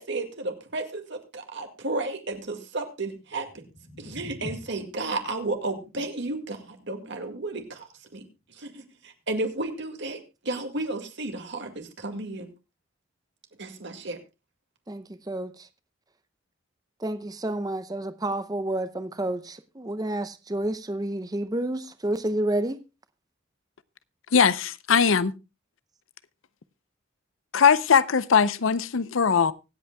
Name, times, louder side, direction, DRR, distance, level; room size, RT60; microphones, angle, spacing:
voice 1, 0.0-3.6 4.0-8.2 8.6-12.5 13.6-14.2, right 2 dB, 60° right, 2.0 m, -33 dB
sound 1, 3.2-9.4, left 1 dB, 60° left, 1.6 m, -47 dB
voice 2, 14.9-15.7 17.0-22.8, right 1 dB, 20° right, 0.6 m, -30 dB
voice 3, 24.3-25.3 27.5-29.5, left 6 dB, 75° left, 0.6 m, -20 dB
24.5 x 8.2 x 2.3 m
head